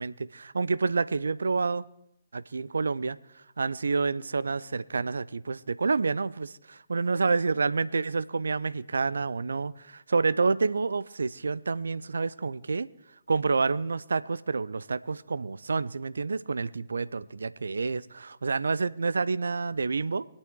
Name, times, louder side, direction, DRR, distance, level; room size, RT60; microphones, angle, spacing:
voice 1, 0.0-1.9 2.3-3.2 3.6-12.9 13.3-20.2, right 4 dB, 75° right, 17 dB, 0.5 m, -28 dB
24.0 x 8.6 x 4.7 m, 0.81 s
figure-of-eight pair, 125°, 0 cm